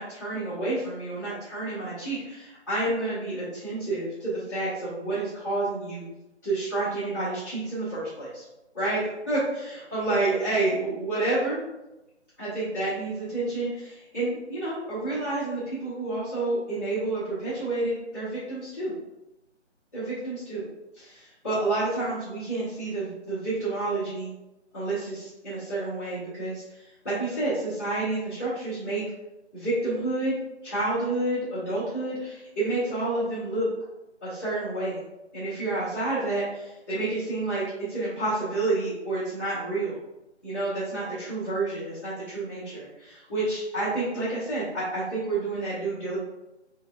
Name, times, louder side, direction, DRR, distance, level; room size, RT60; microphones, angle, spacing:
voice 1, 0.0-6.0 6.4-8.4 8.7-11.6 12.4-18.9 19.9-20.6 20.9-24.3 24.7-29.0 29.5-30.3 30.6-33.7 34.2-35.0 35.3-40.0 40.4-46.2, right 2 dB, 15° left, -15 dB, 0.9 m, -29 dB
5.3 x 2.8 x 2.3 m, 0.98 s
figure-of-eight pair, 170°, 35 cm